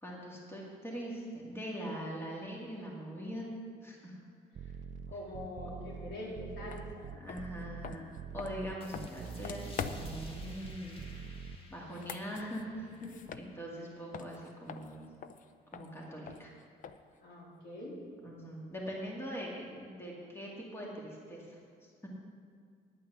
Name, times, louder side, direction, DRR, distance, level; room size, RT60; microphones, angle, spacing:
voice 1, 0.0-3.5 3.8-4.2 7.1-11.0 11.7-12.9 13.3-15.1 15.7-16.5 18.2-22.1, equal, 15° left, -3 dB, 2.2 m, -42 dB
sound 1, 4.5-11.6, right 7 dB, 45° right, 0.5 m, -44 dB
voice 2, 5.1-7.2 13.0-13.2 17.2-18.0, left 1 dB, 75° left, -4 dB, 3.5 m, -44 dB
sound 2, 6.7-6.8 7.2-10.3 11.8-13.9 14.1-17.2, left 7 dB, 50° left, 0.6 m, -45 dB
sound 3, 8.8-14.0, left 2 dB, 30° left, 1.6 m, -51 dB
9.8 x 9.0 x 6.8 m, 2.2 s
cardioid pair, 130°, 17 cm